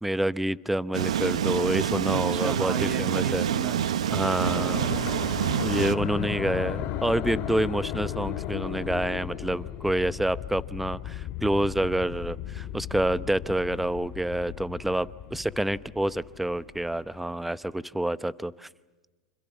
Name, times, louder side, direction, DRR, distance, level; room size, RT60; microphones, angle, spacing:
voice 1, 0.0-3.5 4.1-4.8 5.6-18.7, right 1 dB, 5° right, 17 dB, 0.8 m, -28 dB
sound 1, 0.9-5.9, right 9 dB, 85° right, 0.9 m, -27 dB
voice 2, 2.1-4.1 4.7-5.7, right 5 dB, 25° right, 9 dB, 2.3 m, -35 dB
sound 2, 4.4-17.0, left 11 dB, 45° left, 2.2 m, -35 dB
29.0 x 26.0 x 7.2 m, 1.2 s
hypercardioid pair, 105°, 3 cm